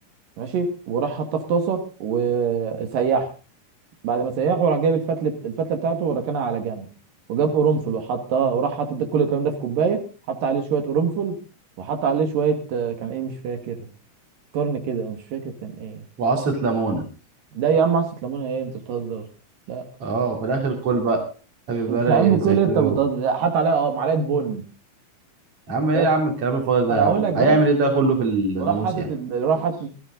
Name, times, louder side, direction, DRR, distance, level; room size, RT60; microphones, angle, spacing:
voice 1, 0.4-3.3 4.0-6.9 7.3-11.4 11.8-13.9 14.5-16.0 17.5-19.3 19.7-19.9 21.9-24.6 25.9-26.1 26.9-27.6 28.6-29.9, right 6 dB, 85° right, 6 dB, 3.5 m, -23 dB
voice 2, 16.2-17.0 20.0-21.2 21.7-23.0 25.7-29.1, right 3 dB, 45° right, 4 dB, 4.0 m, -22 dB
19.0 x 13.5 x 3.8 m, 0.33 s
omnidirectional pair, 3.8 m